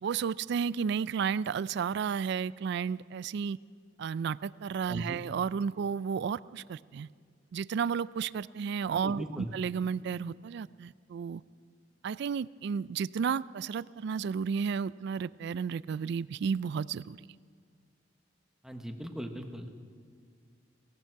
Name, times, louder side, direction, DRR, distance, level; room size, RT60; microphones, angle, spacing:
voice 1, 0.0-3.6 4.0-7.1 7.5-11.4 12.0-17.2, right 6 dB, 60° right, 19 dB, 0.3 m, -32 dB
voice 2, 4.9-5.2 9.0-9.5 18.6-19.7, equal, 5° right, 5 dB, 1.1 m, -39 dB
17.5 x 17.0 x 4.6 m, 2.2 s
head